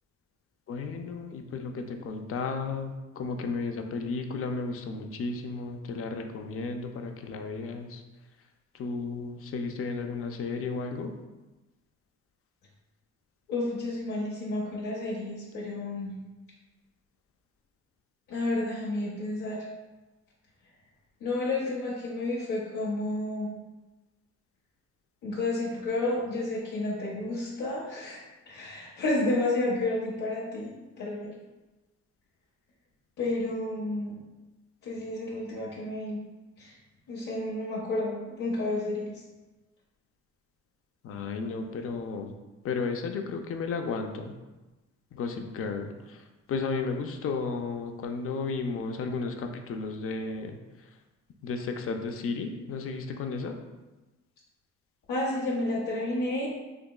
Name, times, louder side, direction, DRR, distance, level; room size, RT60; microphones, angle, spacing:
voice 1, 0.7-8.0 8.7-11.1 41.0-42.4 42.6-44.3 45.1-51.0 51.4-53.6, left 4 dB, 50° left, 5 dB, 0.4 m, -33 dB
voice 2, 13.5-16.1 18.3-19.7 21.2-23.5 25.2-28.2 28.5-30.7 31.0-31.3 33.2-34.1 34.8-36.2 36.6-36.7 37.1-39.1 55.1-56.5, left 2 dB, 75° left, -5 dB, 0.8 m, -31 dB
3.5 x 2.9 x 2.3 m, 1.1 s
cardioid pair, 90°, 30 cm